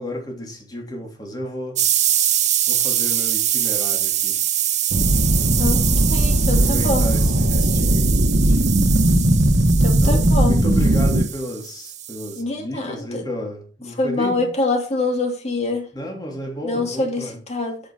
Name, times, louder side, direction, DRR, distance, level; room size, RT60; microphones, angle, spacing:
voice 1, 0.0-1.8 2.7-4.4 5.8-6.0 6.5-8.7 10.0-14.4 15.9-17.4, equal, 25° left, 3.0 m, -32 dB
sound 1, 1.8-12.4, right 11 dB, 40° right, 0.8 m, -24 dB
sound 2, 4.9-11.2, right 1 dB, 80° right, 1.2 m, -18 dB
voice 2, 5.6-7.1 9.8-10.6 12.4-13.2 14.0-15.9 16.6-17.8, left 2 dB, 40° left, 2.5 m, -25 dB
8.8 x 6.5 x 5.5 m
head